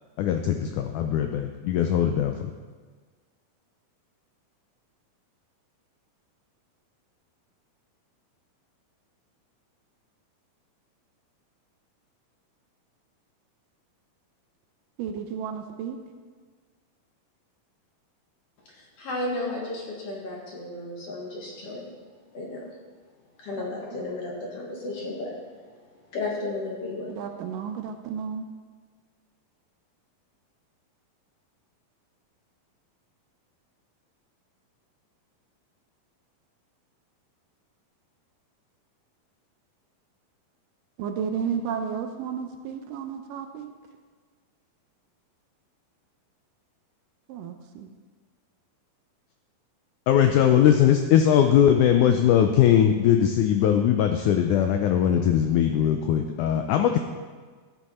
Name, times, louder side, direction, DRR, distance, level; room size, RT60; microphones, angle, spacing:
voice 1, 0.2-2.5 50.1-57.0, left 9 dB, 90° left, 6 dB, 1.7 m, -20 dB
voice 2, 15.0-16.0 23.6-23.8 27.1-28.4 41.0-43.7 47.3-47.9, right 7 dB, 75° right, 6 dB, 2.2 m, -32 dB
voice 3, 18.7-21.9 22.3-22.8 23.4-27.2, left 2 dB, 50° left, -2 dB, 2.2 m, -34 dB
14.0 x 8.1 x 4.3 m, 1.5 s
omnidirectional pair, 4.2 m